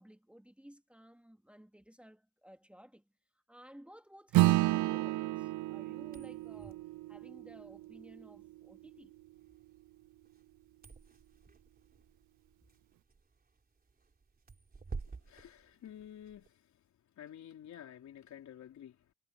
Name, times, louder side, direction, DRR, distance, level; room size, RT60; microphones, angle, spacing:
voice 1, 0.0-3.0 3.5-9.1, equal, 5° right, 2.2 m, -56 dB
Acoustic guitar / Strum, 4.3-9.1, right 17 dB, 75° right, 0.5 m, -31 dB
sound 1, 6.0-16.5, right 4 dB, 30° right, 3.8 m, -51 dB
voice 2, 15.2-16.8 17.2-19.1, left 10 dB, 65° left, 4.4 m, -51 dB
cardioid pair, 90°, 30 cm